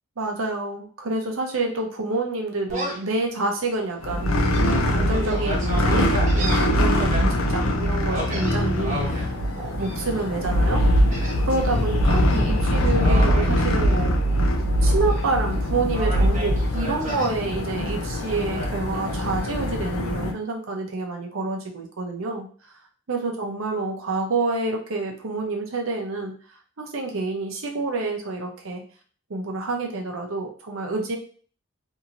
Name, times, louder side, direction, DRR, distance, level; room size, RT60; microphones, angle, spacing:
voice 1, 0.2-4.3 4.9-10.8 11.4-14.1 14.8-22.5 23.1-26.3 26.8-28.8 29.3-31.2, right 3 dB, 75° right, 1 dB, 0.7 m, -28 dB
Gull seagull, 2.7-3.1 3.6-3.7 4.3-7.2 8.1-9.3 9.8-10.2 11.1-11.8 12.1-12.4 12.9-14.5 14.8-15.6 15.9-17.3 18.5-19.5, equal, 35° right, 0.9 m, -33 dB
sound 1, 4.0-20.3, equal, 80° left, 0.5 m, -22 dB
2.9 x 2.6 x 2.5 m, 0.42 s
head